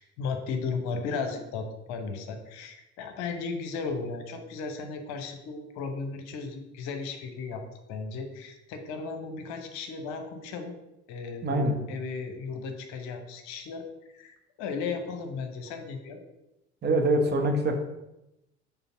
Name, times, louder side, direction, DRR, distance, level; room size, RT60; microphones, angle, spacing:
voice 1, 0.0-10.7 11.1-13.9 14.1-16.2, left 4 dB, 55° left, 6 dB, 1.0 m, -35 dB
voice 2, 11.4-11.8 16.8-17.8, right 1 dB, 30° right, 4 dB, 1.3 m, -24 dB
6.9 x 3.9 x 5.8 m, 0.91 s
figure-of-eight pair, 60°, 33 cm